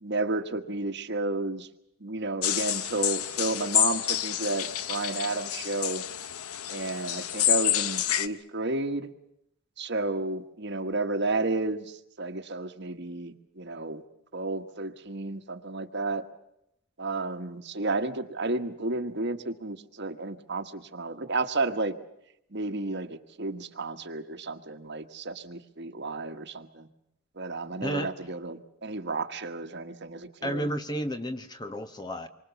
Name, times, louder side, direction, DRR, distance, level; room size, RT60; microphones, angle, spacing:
voice 1, 0.0-1.7 2.0-6.0 6.7-9.1 9.8-14.0 14.3-16.2 17.0-21.9 22.5-26.9 27.4-30.7, right 2 dB, 50° right, 8 dB, 1.5 m, -32 dB
sound 1, 2.4-8.3, left 12 dB, 85° left, 0.9 m, -28 dB
voice 2, 27.8-28.1 30.4-32.3, equal, 20° left, 9 dB, 1.1 m, -32 dB
27.0 x 24.5 x 7.1 m, 0.79 s
head